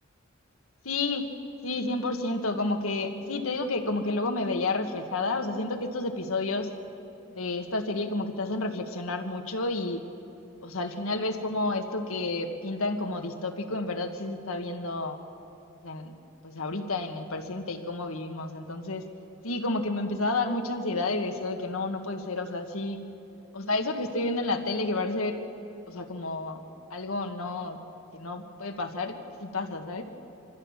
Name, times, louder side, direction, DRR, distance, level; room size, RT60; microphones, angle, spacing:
voice 1, 0.8-1.3 1.6-6.7 7.3-10.0 10.6-15.2 15.8-16.1 16.4-19.0 19.4-23.0 23.5-25.4 25.9-26.6 26.9-27.8 28.1-29.1 29.4-30.0, left 2 dB, 90° left, 5 dB, 1.7 m, -30 dB
25.5 x 14.5 x 7.4 m, 3.0 s
head